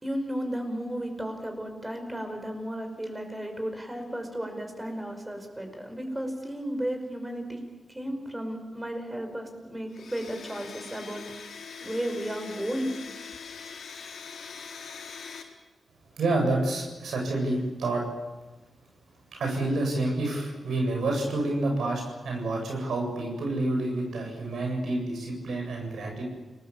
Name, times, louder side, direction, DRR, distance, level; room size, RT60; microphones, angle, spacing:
voice 1, 0.0-7.6 7.9-11.2 11.8-12.9, equal, 15° right, 5 dB, 5.5 m, -34 dB
Domestic sounds home sounds, 9.9-15.4, left 6 dB, 80° left, 4.3 m, -42 dB
voice 2, 16.1-18.1 19.3-26.2, right 2 dB, 80° right, 1 dB, 7.9 m, -28 dB
29.5 x 20.5 x 7.3 m, 1.2 s
wide cardioid pair, 110°, 0 cm